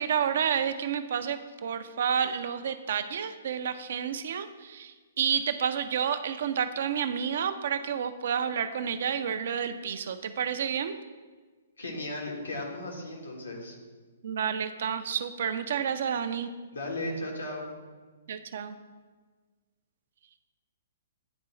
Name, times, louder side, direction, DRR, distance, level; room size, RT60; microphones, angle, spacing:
voice 1, 0.0-10.9 14.2-16.5 18.3-18.8, right 7 dB, 60° right, 10 dB, 0.4 m, -30 dB
voice 2, 11.8-13.7 16.7-17.7, left 1 dB, 85° left, -2 dB, 1.6 m, -36 dB
9.5 x 3.7 x 3.1 m, 1.4 s
figure-of-eight pair, 125°, 0 cm